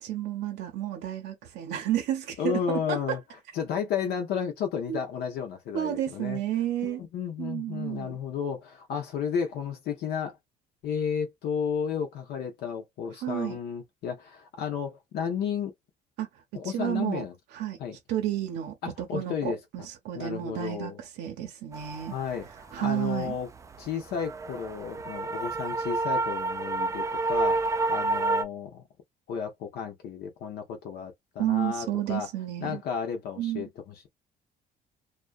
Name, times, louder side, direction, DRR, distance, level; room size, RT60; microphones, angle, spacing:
voice 1, 0.0-3.2 4.9-5.0 5.7-7.0 7.4-8.2 13.2-13.6 16.2-16.3 16.6-17.2 17.5-17.8 18.1-20.9 21.2-22.1 22.7-23.3 31.4-32.8 33.4-33.6, right 11 dB, 85° right, 0.8 m, -31 dB
voice 2, 2.4-3.2 3.5-6.4 6.8-10.4 10.8-15.7 16.5-17.4 17.8-18.0 18.8-19.6 20.1-21.0 22.1-23.5 23.8-28.8 29.3-32.3 32.6-34.1, left 7 dB, 70° left, 0.7 m, -33 dB
sound 1, 21.7-28.4, right 3 dB, 20° right, 0.3 m, -30 dB
2.3 x 2.2 x 2.4 m
cardioid pair, 110°, 17 cm